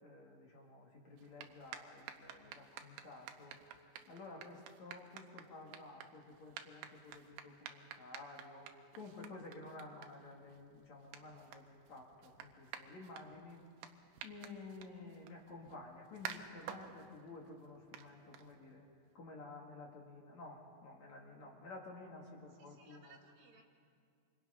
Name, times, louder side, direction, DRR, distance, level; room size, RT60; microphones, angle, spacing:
voice 1, 0.0-13.6 14.2-18.8 19.1-23.2, left 3 dB, 50° left, -1 dB, 2.8 m, -52 dB
sound 1, 1.1-18.9, right 9 dB, 85° right, 3.3 m, -53 dB
voice 2, 22.5-23.6, right 5 dB, 60° right, 1 dB, 3.3 m, -63 dB
27.0 x 26.5 x 5.7 m, 2.3 s
omnidirectional pair, 4.9 m